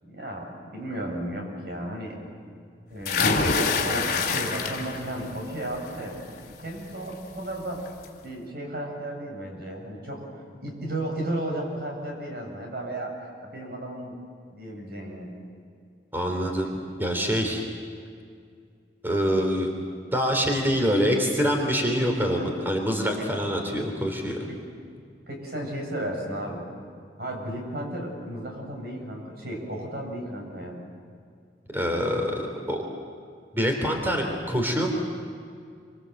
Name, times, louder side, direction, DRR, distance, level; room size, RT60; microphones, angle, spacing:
voice 1, 0.0-2.2 2.9-7.8 8.2-10.2 10.6-13.1 13.4-14.2 14.5-15.3 22.4-22.5 23.2-23.3 24.5-24.6 25.3-26.7 27.2-30.8, right 1 dB, 60° right, 1 dB, 7.7 m, -34 dB
sound 1, 3.1-5.1 5.5-6.0 7.4-7.5 7.9-8.0, left 4 dB, 55° left, 3.8 m, -25 dB
voice 2, 16.1-17.7 19.0-19.7 20.1-24.4 31.7-32.8 33.5-34.9, equal, 10° right, 2 dB, 3.6 m, -25 dB
28.0 x 26.5 x 8.0 m, 2.2 s
head